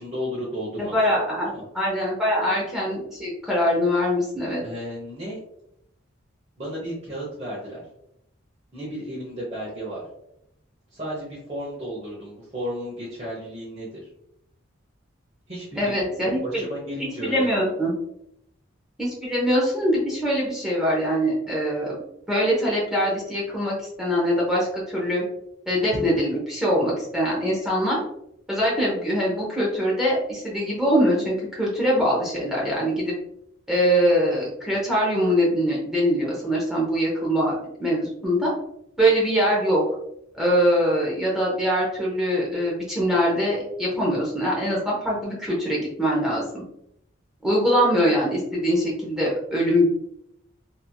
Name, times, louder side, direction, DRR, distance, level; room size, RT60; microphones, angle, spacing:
voice 1, 0.0-1.6 2.5-2.6 4.6-5.4 6.6-7.8 8.7-10.0 10.9-14.0 15.5-17.5, equal, 30° right, -7 dB, 0.8 m, -34 dB
voice 2, 0.8-1.5 1.7-4.6 15.8-16.7 17.2-17.9 19.0-22.0 22.3-25.2 25.7-28.0 28.5-33.1 33.7-37.5 37.8-38.5 39.0-39.8 40.3-46.6 47.4-49.9, equal, ahead, -5 dB, 0.7 m, -23 dB
3.0 x 2.7 x 2.2 m, 0.76 s
head